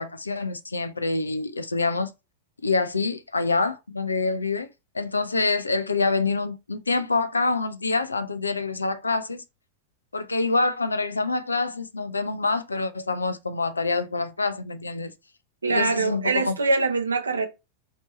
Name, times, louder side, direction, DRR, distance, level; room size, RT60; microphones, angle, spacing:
voice 1, 0.0-2.1 2.6-4.7 4.9-9.4 10.1-15.1 15.7-16.6, left 3 dB, 80° left, 0.5 m, -26 dB
voice 2, 15.6-17.5, right 3 dB, 75° right, 0.8 m, -23 dB
4.4 x 2.9 x 4.1 m
figure-of-eight pair, 90°, 0 cm